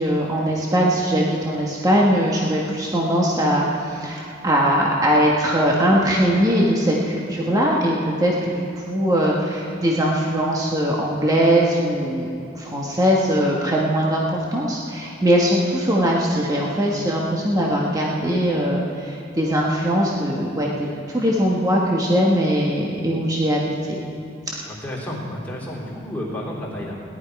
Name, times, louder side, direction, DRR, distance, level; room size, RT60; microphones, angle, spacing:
voice 1, 0.0-12.3 12.5-14.2 14.5-23.6 23.9-24.0 24.5-24.6, equal, 20° right, -3 dB, 1.3 m, -20 dB
voice 2, 24.7-27.0, left 1 dB, 10° left, -6 dB, 3.3 m, -31 dB
18.0 x 11.5 x 4.7 m, 2.6 s
head